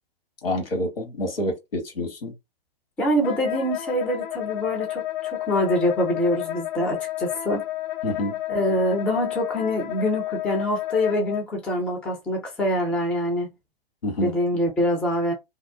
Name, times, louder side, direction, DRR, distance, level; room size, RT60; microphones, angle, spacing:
voice 1, 0.4-2.3 8.0-8.4 14.0-14.4, left 1 dB, 70° left, 1.2 m, -27 dB
voice 2, 3.0-7.6 8.5-13.5 14.2-15.3, equal, 5° left, 0.3 m, -25 dB
Wind instrument woodwind instrument, 3.2-11.4, left 14 dB, 55° left, 0.6 m, -31 dB
2.6 x 2.0 x 2.6 m
figure-of-eight pair, 115°, 30 cm